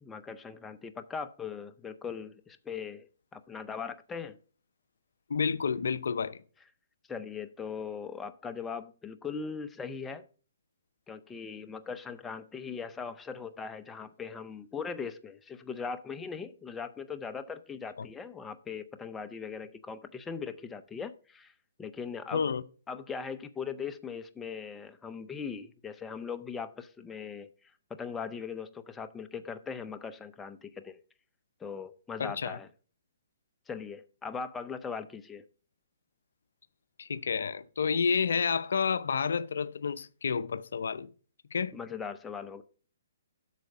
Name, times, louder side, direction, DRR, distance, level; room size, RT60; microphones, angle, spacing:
voice 1, 0.0-4.4 7.1-10.3 11.1-21.5 21.8-22.5 22.9-27.5 27.9-31.0 31.6-32.7 33.7-35.4 41.7-42.6, left 6 dB, 10° left, 0.6 m, -40 dB
voice 2, 5.3-6.4 22.3-22.6 32.2-32.6 37.0-41.1 41.5-41.7, left 6 dB, 75° left, 0.5 m, -30 dB
8.2 x 6.3 x 4.7 m
hypercardioid pair, 145°, 0 cm